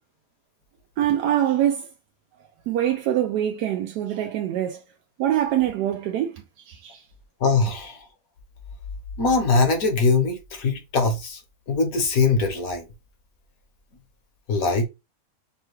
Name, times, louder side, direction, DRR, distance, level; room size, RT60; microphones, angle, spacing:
voice 1, 1.0-1.9 2.7-4.8 5.2-6.3 6.7-7.0, right 11 dB, 90° right, 1.1 m, -24 dB
voice 2, 7.4-8.1 9.2-11.4 11.7-12.9 14.5-14.8, left 4 dB, 65° left, 1.4 m, -22 dB
5.4 x 2.2 x 3.1 m
omnidirectional pair, 1.7 m